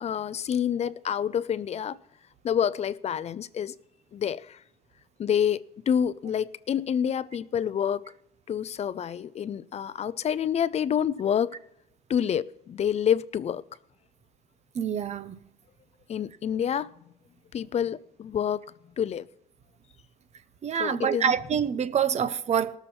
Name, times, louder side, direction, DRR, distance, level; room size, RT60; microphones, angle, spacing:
voice 1, 0.0-2.0 2.4-3.8 4.1-4.6 5.2-8.1 8.5-11.6 12.1-13.7 16.1-16.9 17.5-18.6 19.0-19.3 20.8-21.3, left 8 dB, 40° left, 0.5 m, -28 dB
voice 2, 14.7-15.4 20.6-22.8, right 8 dB, 40° right, 0.8 m, -26 dB
19.0 x 7.0 x 4.3 m
cardioid pair, 110°, 17 cm